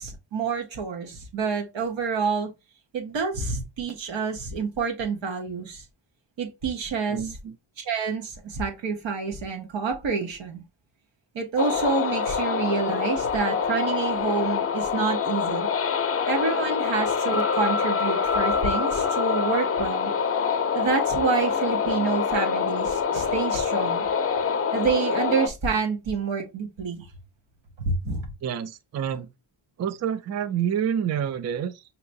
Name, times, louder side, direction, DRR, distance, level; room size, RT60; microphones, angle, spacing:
voice 1, 0.0-2.5 2.9-5.8 6.4-7.4 7.8-10.6 11.3-15.7 16.3-20.1 20.7-24.1 24.7-27.1 27.8-28.3, right 5 dB, 85° right, 1.2 m, -28 dB
voice 2, 7.1-7.5 28.4-29.3 29.8-31.8, right 8 dB, 40° right, 0.4 m, -28 dB
sound 1, 11.6-25.5, left 6 dB, 30° left, 0.5 m, -25 dB
5.6 x 2.9 x 2.5 m
wide cardioid pair, 110°, 44 cm